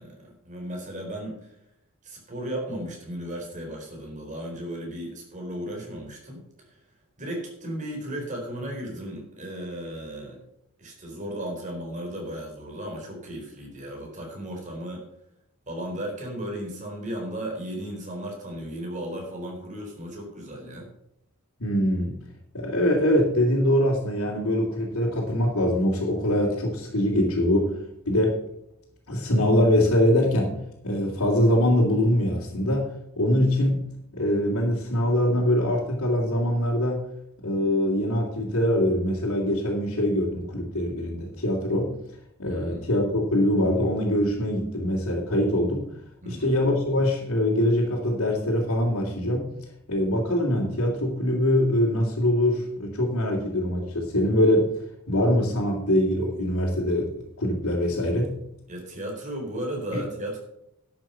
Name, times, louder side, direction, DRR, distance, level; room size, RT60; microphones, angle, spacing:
voice 1, 0.0-1.5 2.0-6.4 7.2-10.4 10.8-15.0 15.7-20.9 42.5-42.8 46.2-46.5 58.7-60.4, right 1 dB, 35° right, 0 dB, 4.2 m, -35 dB
voice 2, 21.6-22.2 22.5-27.8 28.0-28.4 29.1-30.6 30.8-32.8 33.2-33.8 34.1-37.0 37.4-41.9 42.4-45.9 46.2-49.5 49.9-54.7 55.1-57.1 57.4-58.3 59.9-60.0, left 1 dB, 80° left, -6 dB, 2.8 m, -23 dB
12.0 x 7.8 x 5.6 m, 0.79 s
head